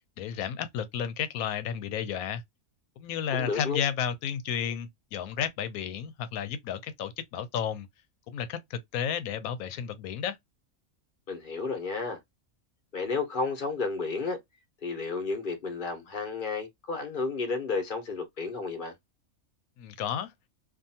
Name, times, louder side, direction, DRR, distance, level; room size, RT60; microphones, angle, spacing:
voice 1, 0.2-2.4 3.0-7.9 8.3-10.4 19.8-20.3, left 8 dB, 85° left, 1.0 m, -32 dB
voice 2, 3.3-3.8 11.3-12.2 12.9-14.4 14.8-18.9, left 4 dB, 45° left, 0.9 m, -32 dB
2.7 x 2.4 x 2.7 m
omnidirectional pair, 1.5 m